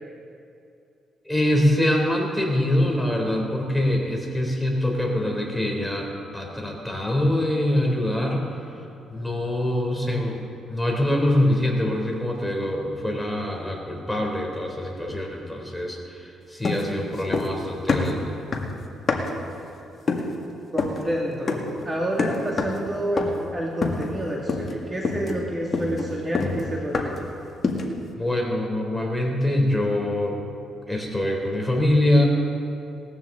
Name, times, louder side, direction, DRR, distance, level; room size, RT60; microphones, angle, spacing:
voice 1, 1.2-8.4 9.1-10.4 10.7-18.4 28.1-30.3 30.9-32.3, left 1 dB, 5° left, -1 dB, 3.3 m, -24 dB
sound 1, 16.6-17.6 17.9-19.5 20.1-20.4 20.8-21.1 21.5-21.8 22.2-22.9 23.2-23.5 23.8-24.2 24.5-24.8 25.0-27.3 27.6-28.0, left 3 dB, 40° left, 1.9 m, -26 dB
voice 2, 20.7-27.3, equal, 20° right, -3 dB, 2.2 m, -29 dB
19.5 x 14.5 x 3.9 m, 2.6 s
cardioid pair, 90°, 0 cm